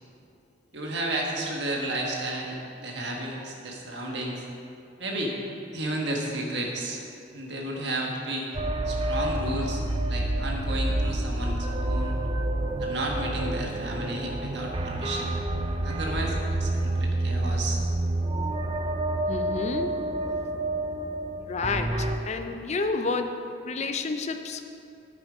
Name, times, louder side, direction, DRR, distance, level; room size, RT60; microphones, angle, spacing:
voice 1, 0.7-4.4 5.0-5.3 5.7-7.0 7.3-8.5 8.8-9.8 10.1-12.2 12.8-15.4 15.8-17.8, right 1 dB, 65° right, -1 dB, 1.4 m, -32 dB
sound 1, 8.5-22.2, right 1 dB, 30° right, 0.6 m, -28 dB
voice 2, 19.3-20.0 21.5-23.4 23.6-24.6, left 3 dB, 35° left, 7 dB, 0.6 m, -30 dB
9.0 x 8.9 x 5.0 m, 2.6 s
head